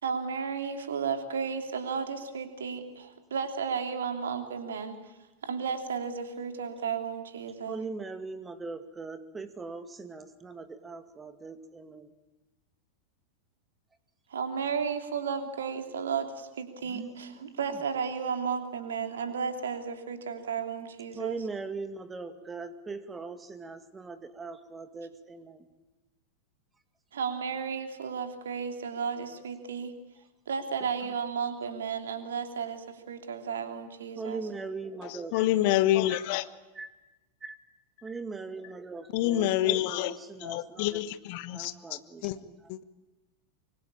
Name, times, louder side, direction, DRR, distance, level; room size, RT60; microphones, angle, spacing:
voice 1, 0.0-5.0 5.4-7.8 14.3-21.4 27.1-29.9 30.5-34.4, right 6 dB, 65° right, 6 dB, 2.9 m, -33 dB
voice 2, 7.7-12.1 16.8-17.8 21.1-25.7 31.0-31.1 34.2-35.4 35.9-36.2 36.7-36.9 37.4-37.6 38.0-41.1 41.5-42.6, right 4 dB, 15° right, 9 dB, 2.2 m, -40 dB
voice 3, 35.0-36.4 39.1-40.1 40.4-42.4 42.7-42.8, left 14 dB, 45° left, 14 dB, 1.2 m, -28 dB
25.0 x 24.5 x 8.8 m, 1.1 s
figure-of-eight pair, 90°, 0 cm